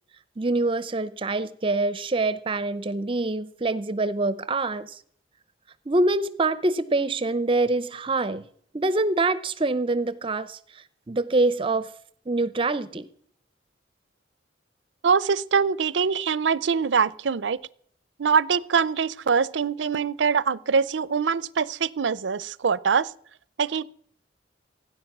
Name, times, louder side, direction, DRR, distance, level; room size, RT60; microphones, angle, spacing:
voice 1, 0.4-5.0 5.9-8.4 8.7-11.9 12.3-13.1, right 2 dB, 30° right, 15 dB, 0.6 m, -25 dB
voice 2, 15.0-17.6 18.2-23.1 23.6-23.9, right 6 dB, 90° right, 21 dB, 0.5 m, -23 dB
16.5 x 10.0 x 6.0 m, 0.63 s
head